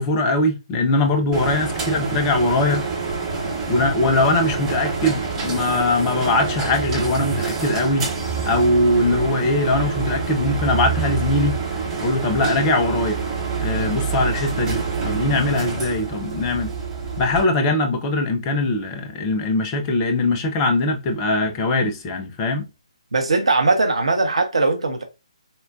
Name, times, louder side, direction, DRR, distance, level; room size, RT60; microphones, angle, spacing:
voice 1, 0.0-2.8 3.7-8.0 8.4-11.5 12.0-13.2 13.6-16.7 17.2-22.7, left 2 dB, 20° left, 0.5 m, -21 dB
sound 1, 1.3-17.4, right 5 dB, 15° right, 0.9 m, -26 dB
voice 2, 23.1-25.0, right 3 dB, 65° right, 0.7 m, -19 dB
4.0 x 2.2 x 2.4 m
figure-of-eight pair, 140°, 3 cm